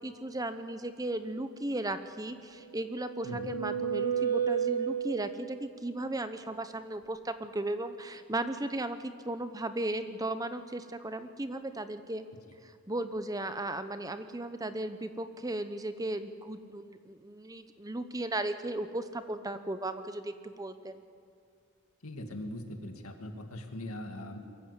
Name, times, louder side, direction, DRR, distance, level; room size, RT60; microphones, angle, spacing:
voice 1, 0.0-12.2 12.9-21.0, right 1 dB, 15° right, 10 dB, 0.9 m, -36 dB
sound 1, 2.5-5.6, right 7 dB, 50° right, 7.2 m, -32 dB
voice 2, 22.0-24.4, left 1 dB, 90° left, 5 dB, 2.2 m, -41 dB
22.5 x 15.0 x 8.3 m, 2.3 s
head